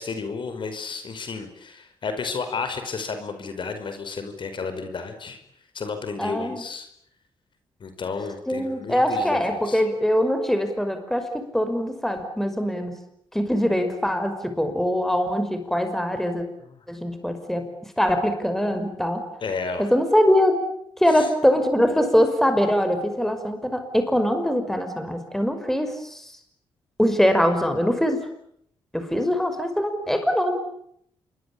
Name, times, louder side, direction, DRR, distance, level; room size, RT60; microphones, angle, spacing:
voice 1, 0.0-5.4 5.7-6.9 7.8-9.8 19.4-19.9 21.1-21.3, left 4 dB, 55° left, 8 dB, 5.2 m, -32 dB
voice 2, 6.2-6.6 8.5-13.0 13.3-16.4 16.9-17.7 18.0-19.3 19.8-20.5 21.0-26.3 27.0-28.2 28.9-30.6, equal, 5° left, 7 dB, 5.7 m, -22 dB
27.5 x 23.0 x 8.7 m, 0.72 s
cardioid pair, 80°, 10 cm